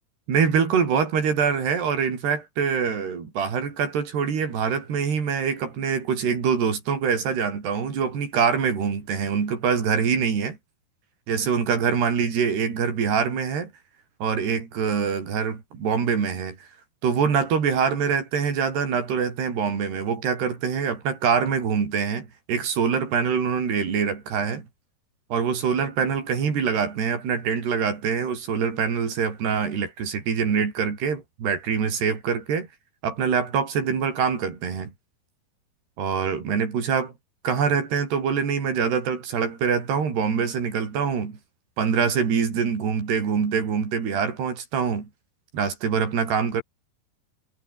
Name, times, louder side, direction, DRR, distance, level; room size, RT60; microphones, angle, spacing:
voice 1, 0.3-10.6 11.3-13.7 14.2-16.7 17.0-24.7 25.3-32.7 33.0-34.9 36.0-37.1 37.4-41.4 41.8-45.1 45.5-46.6, right 6 dB, 85° right, 6.7 m, -24 dB
omnidirectional pair, 4.6 m